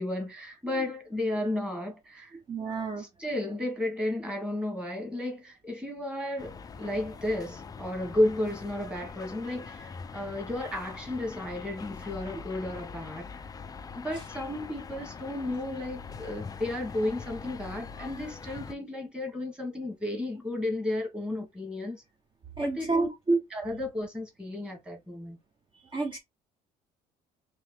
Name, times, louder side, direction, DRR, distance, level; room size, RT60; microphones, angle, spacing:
voice 1, 0.0-2.4 3.0-13.5 13.9-22.0 22.6-23.1 23.5-25.4, left 1 dB, 5° right, 1.6 m, -33 dB
voice 2, 2.5-3.0 22.6-23.4 25.7-26.2, right 3 dB, 30° right, 0.8 m, -29 dB
sound 1, 6.4-18.7, left 5 dB, 20° left, 0.3 m, -43 dB
3.2 x 2.9 x 3.4 m
cardioid pair, 110°, 17 cm